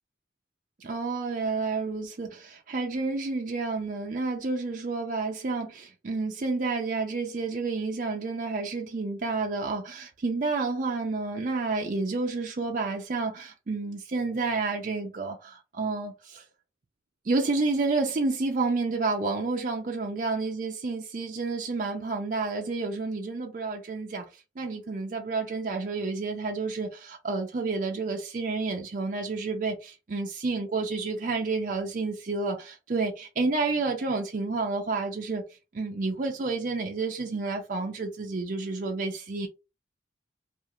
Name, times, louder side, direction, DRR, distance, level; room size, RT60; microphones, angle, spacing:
voice 1, 0.8-16.4 17.3-35.4 35.7-39.5, right 3 dB, 45° right, 0.4 m, -30 dB
2.4 x 2.4 x 2.8 m
head